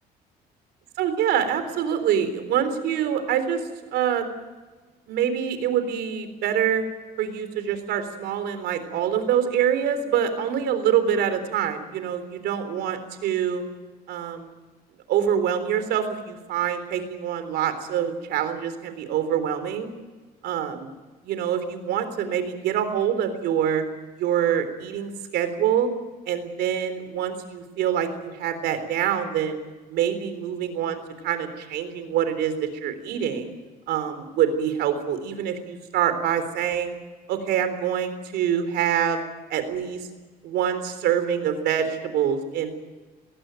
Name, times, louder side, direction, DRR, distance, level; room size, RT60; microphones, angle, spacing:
voice 1, 1.0-3.6 3.9-4.3 5.1-6.8 7.2-13.6 14.1-14.5 15.1-19.9 20.4-20.9 21.3-23.8 24.2-25.9 26.3-29.6 29.9-33.5 33.9-37.0 37.3-39.2 39.5-40.1 40.4-42.7, right 9 dB, 80° right, 10 dB, 3.7 m, -25 dB
21.0 x 17.0 x 9.2 m, 1.2 s
cardioid pair, 110°, 17 cm